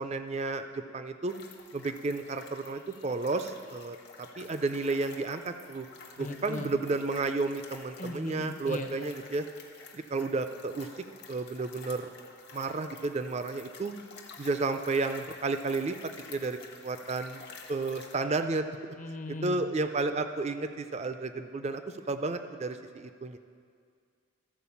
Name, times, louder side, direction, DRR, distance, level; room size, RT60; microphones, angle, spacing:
voice 1, 0.0-1.3 1.7-5.9 6.2-9.4 9.9-10.9 11.3-12.1 12.5-13.9 14.4-16.0 16.3-16.6 16.8-17.4 17.7-18.7 19.4-23.4, right 3 dB, 30° right, 9 dB, 0.4 m, -32 dB
sound 1, 1.3-18.1, left 4 dB, 50° left, 1.0 m, -50 dB
voice 2, 6.2-6.7 8.0-8.9 19.0-19.7, left 1 dB, 35° left, 5 dB, 0.7 m, -38 dB
13.5 x 4.7 x 7.0 m, 2.2 s
head